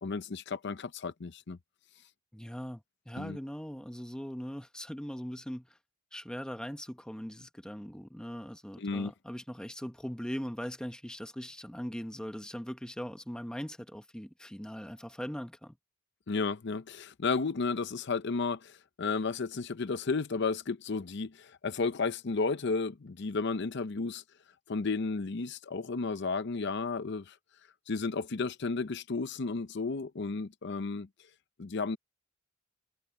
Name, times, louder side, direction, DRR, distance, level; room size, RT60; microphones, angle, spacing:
voice 1, 0.0-1.6 3.2-3.4 8.8-9.1 16.3-24.2 24.7-27.4 27.9-31.1 31.6-32.0, left 4 dB, 60° left, 0.6 m, -33 dB
voice 2, 2.3-5.8 6.1-15.8, equal, 5° left, 1.0 m, -40 dB
head